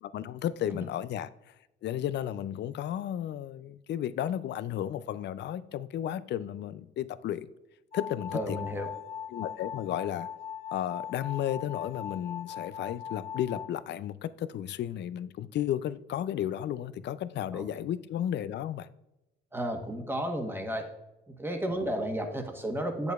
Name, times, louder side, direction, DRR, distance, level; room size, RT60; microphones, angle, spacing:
voice 1, 0.0-1.3 1.8-7.5 7.9-8.6 9.3-10.3 10.7-18.9 21.7-21.8, left 11 dB, 60° left, 0.4 m, -33 dB
sound 1, 7.9-13.7, left 8 dB, 30° left, 1.2 m, -40 dB
voice 2, 8.3-8.9 17.5-17.6 19.5-20.9 21.3-23.1, right 1 dB, 10° right, 1.2 m, -32 dB
8.0 x 6.8 x 2.4 m
cardioid pair, 90°, 20 cm